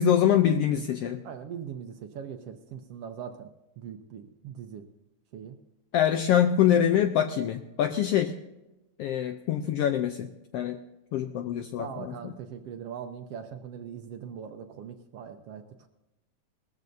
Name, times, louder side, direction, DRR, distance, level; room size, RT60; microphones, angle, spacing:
voice 1, 0.0-1.2 5.9-8.3 9.0-10.8 11.1-12.3, left 10 dB, 80° left, 7 dB, 1.4 m, -24 dB
voice 2, 1.2-3.5 3.8-4.9 5.3-5.6 11.8-15.9, right 8 dB, 70° right, 6 dB, 1.5 m, -41 dB
19.5 x 14.0 x 2.7 m, 0.99 s
omnidirectional pair, 3.3 m